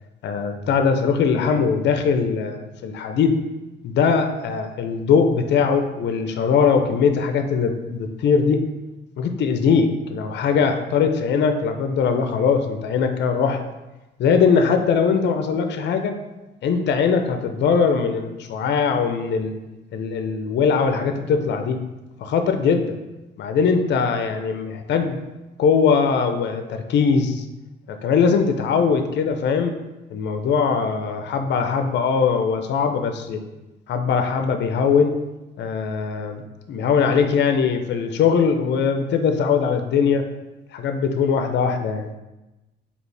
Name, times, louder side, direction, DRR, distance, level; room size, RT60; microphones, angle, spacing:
voice 1, 0.2-3.4 3.8-8.6 9.2-13.6 14.2-16.2 16.6-19.6 19.9-21.8 22.2-23.0 23.4-25.2 25.6-27.4 27.9-29.7 30.1-33.4 33.9-35.1 35.6-40.3 40.7-42.1, left 6 dB, 60° left, 6 dB, 0.5 m, -21 dB
4.3 x 2.8 x 3.2 m, 1.0 s
cardioid pair, 90°, 20 cm